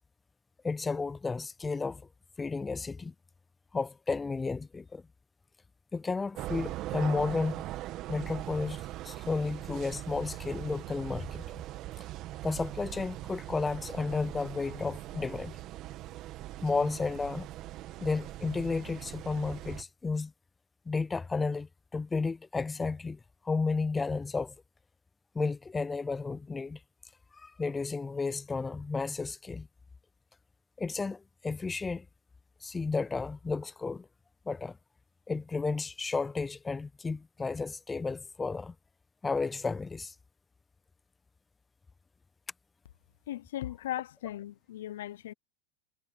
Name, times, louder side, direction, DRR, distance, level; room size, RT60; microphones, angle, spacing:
voice 1, 0.6-2.0 2.4-3.1 3.7-5.0 5.9-7.7 8.1-11.4 12.4-15.6 16.6-17.5 18.0-20.3 20.9-23.2 23.4-24.5 25.3-26.8 27.3-29.7 30.8-32.1 32.6-34.1 34.5-34.8 35.3-38.7 39.2-40.1, left 4 dB, 15° left, 0.7 m, -32 dB
sound 1, 6.4-19.8, right 15 dB, 45° right, 2.1 m, -41 dB
voice 2, 43.3-45.3, left 13 dB, 75° left, 0.6 m, -37 dB
hypercardioid pair, 100°, 0 cm